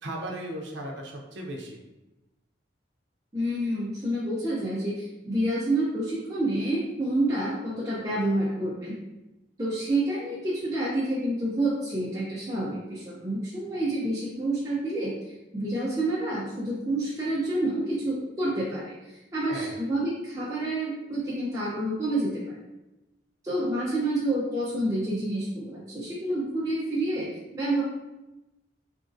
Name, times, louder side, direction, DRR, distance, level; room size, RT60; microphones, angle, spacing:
voice 1, 0.0-1.8 19.4-19.8, right 1 dB, 70° right, 0 dB, 0.5 m, -36 dB
voice 2, 3.3-8.9 9.6-22.6 23.4-27.8, right 1 dB, 15° right, -7 dB, 0.4 m, -28 dB
2.9 x 2.5 x 2.5 m, 1.0 s
head